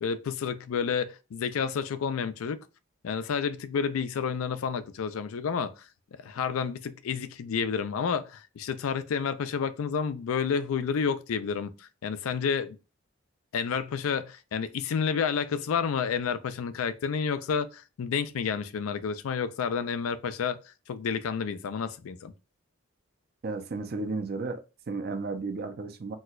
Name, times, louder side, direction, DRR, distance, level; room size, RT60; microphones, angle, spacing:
voice 1, 0.0-2.6 3.0-5.8 6.2-12.8 13.5-20.6 20.9-22.3, left 6 dB, 85° left, 0.4 m, -30 dB
voice 2, 23.4-26.2, right 3 dB, 45° right, 0.4 m, -33 dB
4.2 x 2.2 x 2.3 m
head